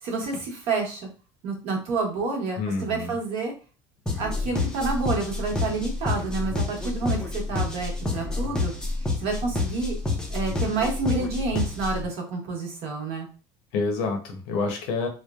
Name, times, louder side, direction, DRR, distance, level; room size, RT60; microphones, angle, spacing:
voice 1, 0.0-1.1 1.4-3.5 4.2-8.7 9.2-10.0 10.3-13.3, right 3 dB, 60° right, 1 dB, 1.0 m, -29 dB
voice 2, 2.6-3.1 13.7-15.1, left 3 dB, 90° left, 3 dB, 0.8 m, -28 dB
sound 1, 4.1-12.1, left 3 dB, 5° left, 0.5 m, -29 dB
3.0 x 2.0 x 2.3 m, 0.35 s
cardioid pair, 155°, 12 cm